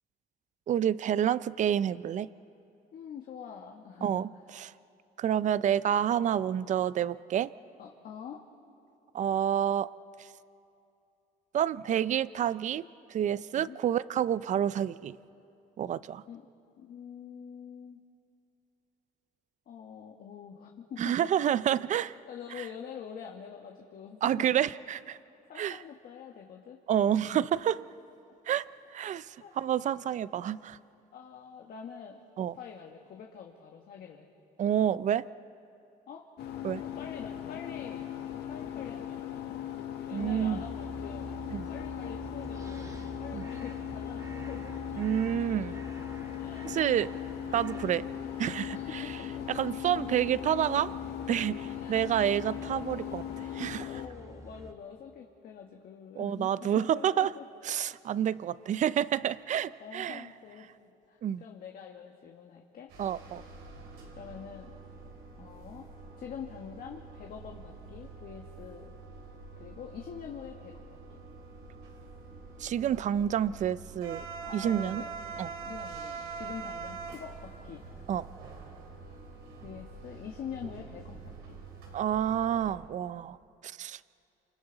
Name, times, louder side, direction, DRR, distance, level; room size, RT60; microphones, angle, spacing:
voice 1, 0.7-2.3 4.0-4.7 5.2-7.5 9.1-9.9 10.2-10.3 11.5-12.8 13.1-15.2 15.8-16.2 21.0-22.2 22.6-22.7 24.2-25.2 25.6-25.8 26.9-27.8 28.5-28.6 28.9-30.8 32.4-32.5 34.6-35.3 36.6-36.8 40.1-40.6 41.5-41.7 43.3-43.5 45.0-45.8 46.7-47.1 47.5-48.1 48.4-49.2 49.5-51.0 51.3-54.0 56.2-57.3 57.6-60.3 61.2-61.4 63.0-63.4 72.6-74.3 74.5-75.0 75.4-75.5 78.1-78.3 81.9-83.4 83.6-84.0, right 10 dB, 45° right, 17 dB, 0.5 m, -29 dB
voice 2, 2.9-4.3 7.8-8.4 13.5-13.8 16.3-16.5 16.8-18.0 19.7-21.3 22.3-24.6 25.5-26.8 27.1-27.4 29.4-29.5 31.1-32.2 32.5-34.3 36.1-36.3 36.8-38.0 38.5-39.4 40.0-44.7 46.4-47.1 47.6-47.9 48.7-49.5 51.8-52.0 53.4-57.4 59.8-60.7 61.1-62.9 64.1-64.7 65.4-65.9 66.2-68.9 69.6-70.8 71.1-71.2 74.4-75.1 75.6-77.9 79.6-81.6, left 7 dB, 60° left, 1 dB, 1.7 m, -45 dB
sound 1, 36.4-54.1, left 11 dB, 80° left, 1.6 m, -39 dB
sound 2, 40.2-54.7, right 2 dB, 20° right, 1.5 m, -47 dB
sound 3, 62.9-82.7, right 4 dB, 85° right, 4.0 m, -45 dB
29.0 x 27.0 x 4.1 m, 2.7 s
cardioid pair, 110°, 17 cm